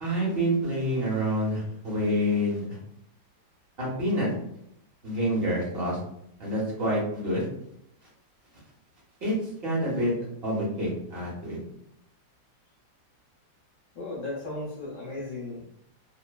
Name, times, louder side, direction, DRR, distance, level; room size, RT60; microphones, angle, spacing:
voice 1, 0.0-2.6 3.8-4.3 5.0-6.0 6.4-7.5 9.2-9.3 9.6-10.1 10.4-11.6, equal, 50° right, -4 dB, 0.8 m, -27 dB
voice 2, 13.9-15.6, left 2 dB, 55° left, -6 dB, 1.1 m, -35 dB
2.8 x 2.1 x 2.2 m, 0.76 s
omnidirectional pair, 1.8 m